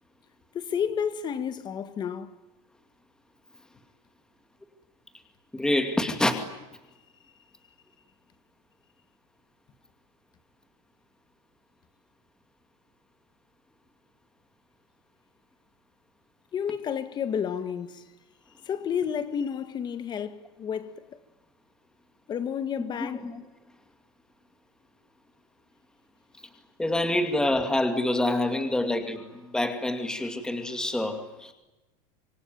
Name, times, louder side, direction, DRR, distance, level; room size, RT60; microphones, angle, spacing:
voice 1, 0.5-2.4 16.5-18.0 18.7-20.9 22.3-23.2, left 8 dB, 25° left, 1.9 m, -31 dB
voice 2, 5.5-6.4 23.0-23.5 26.8-31.5, left 1 dB, 5° left, 2.4 m, -27 dB
26.5 x 23.0 x 9.3 m
supercardioid pair, 165°, 19 cm